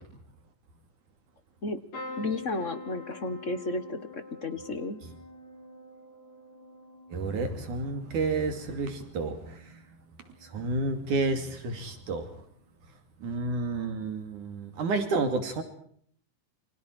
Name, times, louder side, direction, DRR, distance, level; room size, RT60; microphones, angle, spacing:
sound 1, 1.9-9.8 10.2-10.8 12.0-12.2 12.4-12.5, left 3 dB, 55° left, 7.1 m, -46 dB
voice 1, 2.2-5.0, left 2 dB, 35° left, 10 dB, 1.3 m, -33 dB
voice 2, 7.1-9.8 10.4-12.3 13.2-15.6, right 3 dB, 75° right, 7 dB, 4.1 m, -30 dB
28.5 x 26.5 x 4.6 m, 0.62 s
omnidirectional pair, 3.5 m